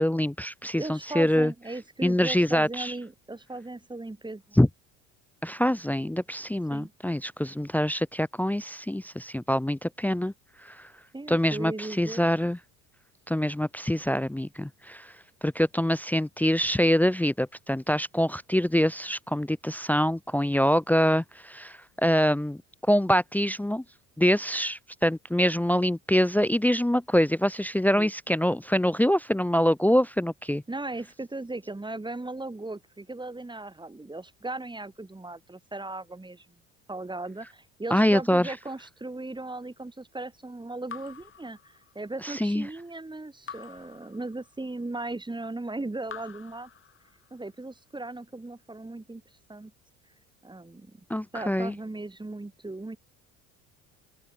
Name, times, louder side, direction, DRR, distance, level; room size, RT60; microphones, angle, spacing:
voice 1, 0.0-1.5 2.0-2.9 4.6-4.7 5.4-10.3 10.7-10.8 11.3-12.6 13.3-15.1 15.4-22.6 22.9-23.8 24.2-30.6 37.9-38.5 42.2-42.7 51.1-51.7, equal, 5° left, 0.8 m, -25 dB
voice 2, 0.8-4.6 6.7-6.9 11.1-12.2 27.9-28.1 30.7-36.5 36.9-46.7 47.3-49.2 49.5-49.7 50.4-51.0 51.3-53.0, right 2 dB, 10° right, 4.4 m, -37 dB
Raindrop / Drip, 40.9-42.3 43.5-44.8 46.0-47.5, left 7 dB, 35° left, 2.8 m, -46 dB
open air
hypercardioid pair, 70°, 38 cm